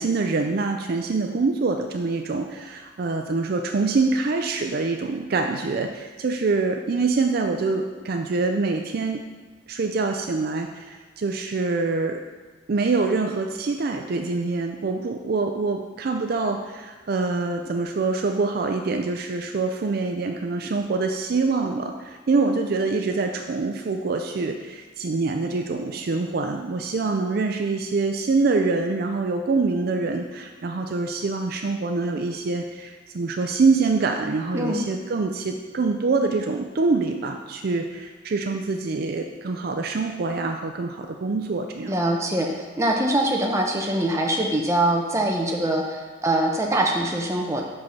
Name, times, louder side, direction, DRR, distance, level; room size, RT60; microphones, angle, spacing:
voice 1, 0.0-9.2 9.7-12.2 12.7-42.0, right 3 dB, 50° right, 4 dB, 0.4 m, -25 dB
voice 2, 41.9-47.6, right 1 dB, 15° right, 0 dB, 0.8 m, -23 dB
5.9 x 5.3 x 5.6 m, 1.4 s
head